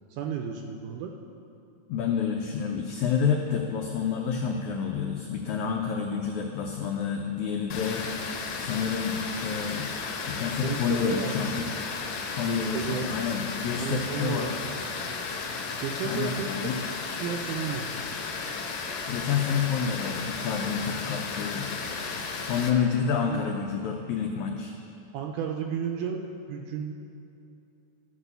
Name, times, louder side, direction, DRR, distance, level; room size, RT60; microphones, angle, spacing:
voice 1, 0.1-1.2 10.6-11.3 12.5-13.1 13.8-14.5 15.8-16.8 17.2-18.1 23.2-23.5 25.1-26.9, right 7 dB, 80° right, 3 dB, 1.9 m, -33 dB
voice 2, 1.9-8.3 8.6-9.9 10.3-11.7 12.3-14.5 16.0-16.8 19.1-21.7 22.5-24.7, left 6 dB, 85° left, 2 dB, 1.6 m, -29 dB
Water, 7.7-22.7, left 4 dB, 70° left, 1.9 m, -34 dB
13.5 x 4.9 x 6.8 m, 2.7 s
omnidirectional pair, 4.1 m